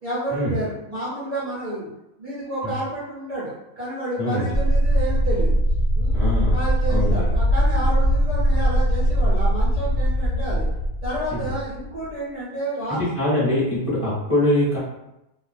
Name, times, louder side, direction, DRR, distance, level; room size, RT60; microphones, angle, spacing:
voice 1, 0.0-1.9 2.2-5.5 6.0-6.2 6.5-10.7 11.0-13.0, right 1 dB, 75° right, -10 dB, 0.3 m, -30 dB
voice 2, 4.2-4.5 6.1-6.6 6.9-7.2 11.3-11.5 12.9-14.8, left 1 dB, 30° left, -10 dB, 0.8 m, -23 dB
sound 1, 4.5-12.1, equal, 75° left, 1.0 m, -21 dB
2.4 x 2.1 x 2.5 m, 0.89 s
omnidirectional pair, 1.6 m